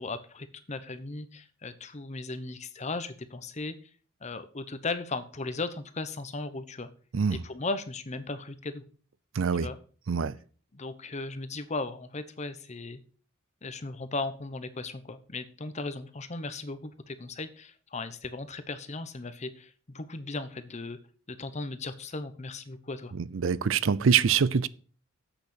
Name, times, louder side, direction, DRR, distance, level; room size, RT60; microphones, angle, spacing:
voice 1, 0.0-3.7 4.2-6.9 7.3-8.8 9.6-9.8 10.7-13.0 13.6-21.0 21.3-23.1, left 3 dB, 35° left, 0.9 m, -37 dB
voice 2, 9.4-9.7 10.1-10.4 23.2-24.7, right 6 dB, 70° right, 0.5 m, -24 dB
8.0 x 6.7 x 6.3 m
head